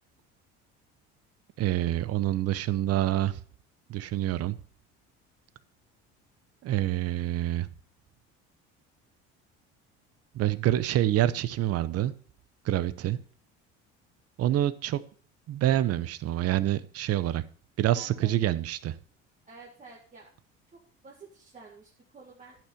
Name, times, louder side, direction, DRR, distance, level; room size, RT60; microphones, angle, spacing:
voice 1, 1.6-3.4 3.9-4.6 6.6-7.7 10.3-12.1 12.6-13.2 14.4-15.0 15.5-17.4 17.8-18.9, right 13 dB, 55° right, 16 dB, 0.8 m, -27 dB
voice 2, 17.9-18.3 19.5-20.3 20.7-22.6, right 4 dB, 25° right, -3 dB, 2.0 m, -50 dB
10.5 x 5.9 x 5.7 m, 0.43 s
supercardioid pair, 100°, 29 cm